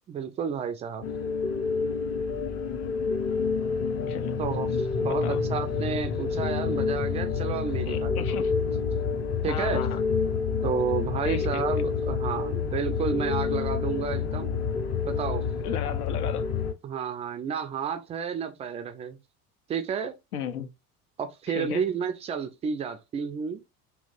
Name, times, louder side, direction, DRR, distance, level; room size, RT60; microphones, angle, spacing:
voice 1, 0.1-1.1 4.4-8.5 9.4-9.9 10.6-14.5 15.1-15.5 16.8-19.2 19.7-20.2 21.2-23.6, right 6 dB, 15° right, 0.3 m, -31 dB
sound 1, 1.0-16.7, left 5 dB, 35° left, 0.7 m, -28 dB
voice 2, 5.1-5.4 7.9-8.5 9.5-10.0 11.2-11.6 15.6-16.5 20.3-20.7 21.5-21.9, left 8 dB, 75° left, 0.6 m, -34 dB
2.8 x 2.1 x 3.8 m
figure-of-eight pair, 65°, 45 cm